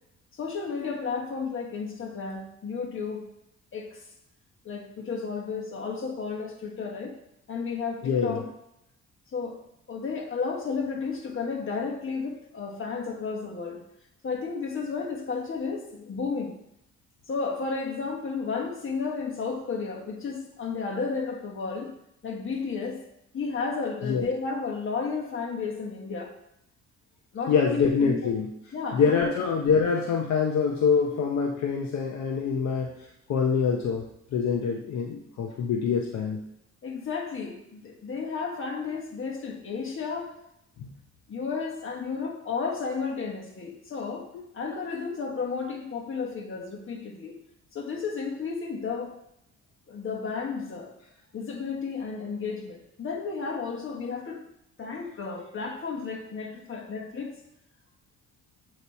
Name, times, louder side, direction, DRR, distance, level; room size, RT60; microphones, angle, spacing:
voice 1, 0.3-3.2 3.7-4.0 4.6-7.2 7.5-8.5 9.3-9.6 9.9-13.8 14.2-16.5 17.3-21.9 22.2-23.0 23.3-26.3 27.3-28.3 28.7-29.3 36.8-40.3 41.3-44.3 44.5-47.3 47.7-49.1 49.9-50.9 51.3-54.4 54.8-57.3, left 5 dB, 45° left, 0 dB, 1.4 m, -32 dB
voice 2, 8.0-8.4 24.0-24.3 27.5-28.5 28.9-32.9 33.3-34.0 34.3-36.4 40.8-40.9, left 6 dB, 65° left, 1 dB, 0.8 m, -25 dB
8.1 x 3.1 x 4.2 m, 0.82 s
cardioid pair, 90°, 30 cm